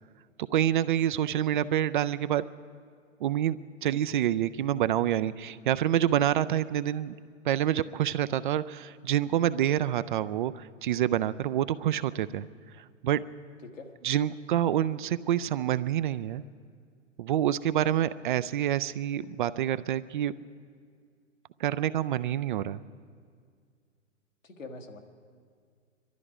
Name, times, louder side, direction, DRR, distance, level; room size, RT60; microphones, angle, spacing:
voice 1, 0.5-2.4 3.2-7.1 7.5-12.5 13.0-13.2 14.0-16.4 17.2-20.3 21.6-22.8, right 11 dB, 40° right, 15 dB, 0.4 m, -27 dB
voice 2, 24.4-25.0, left 3 dB, 85° left, 2 dB, 1.8 m, -43 dB
23.0 x 12.5 x 4.9 m, 2.1 s
figure-of-eight pair, 115°, 38 cm